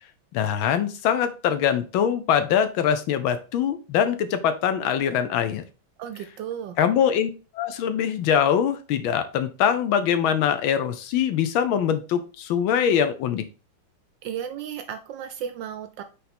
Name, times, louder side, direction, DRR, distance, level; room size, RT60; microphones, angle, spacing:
voice 1, 0.3-5.6 6.8-13.4, left 8 dB, 75° left, 10 dB, 1.4 m, -23 dB
voice 2, 6.0-6.8 14.2-16.0, right 9 dB, 75° right, 9 dB, 1.1 m, -34 dB
5.2 x 4.4 x 4.2 m, 0.33 s
omnidirectional pair, 2.4 m